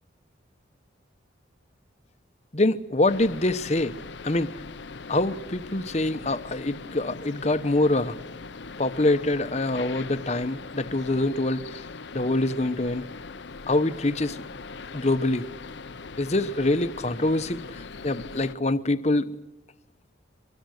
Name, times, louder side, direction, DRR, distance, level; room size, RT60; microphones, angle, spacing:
voice 1, 2.5-3.9 4.2-4.5 5.1-8.2 8.8-11.8 12.1-13.0 13.7-14.4 14.9-15.4 16.2-19.4, left 2 dB, 35° left, 0.9 m, -25 dB
sound 1, 3.1-18.6, left 4 dB, 65° left, 0.7 m, -41 dB
24.0 x 23.0 x 6.5 m
head